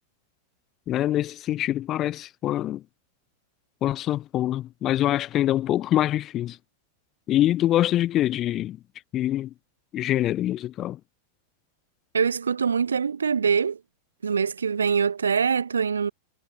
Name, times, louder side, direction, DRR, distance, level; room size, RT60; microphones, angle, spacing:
voice 1, 0.9-2.8 3.8-6.6 7.3-8.8 9.1-9.5 9.9-11.0, left 13 dB, 30° left, 3.1 m, -24 dB
voice 2, 12.1-13.8 14.2-16.1, right 6 dB, 70° right, 1.6 m, -24 dB
figure-of-eight pair, 90°, 0 cm